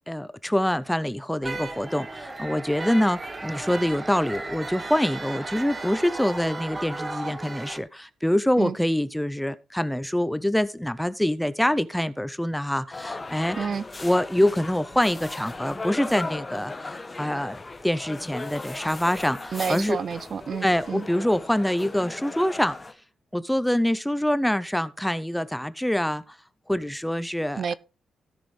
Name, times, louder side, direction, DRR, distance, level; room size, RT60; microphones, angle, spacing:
voice 1, 0.1-13.6 14.0-17.6 17.8-20.0 20.6-22.8 23.3-26.4 26.7-27.7, left 1 dB, 5° left, 0.5 m, -25 dB
sound 1, 1.4-7.8, right 2 dB, 25° right, 1.2 m, -35 dB
sound 2, 12.9-22.9, left 3 dB, 20° left, 1.0 m, -37 dB
voice 2, 19.5-21.1 27.5-27.7, right 6 dB, 50° right, 0.4 m, -29 dB
16.5 x 6.1 x 3.2 m
cardioid pair, 120°, 0 cm